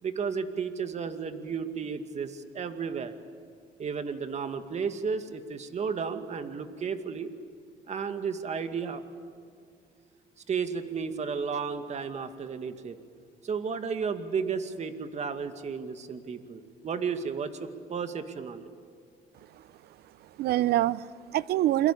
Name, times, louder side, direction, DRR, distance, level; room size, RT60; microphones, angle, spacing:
voice 1, 0.0-3.1 3.8-7.3 7.9-9.0 10.5-13.0 13.4-18.7, right 6 dB, 40° right, 8 dB, 2.2 m, -33 dB
voice 2, 20.0-21.9, right 14 dB, 70° right, 19 dB, 0.7 m, -27 dB
29.0 x 22.5 x 8.6 m, 2.3 s
cardioid pair, 110°, 17 cm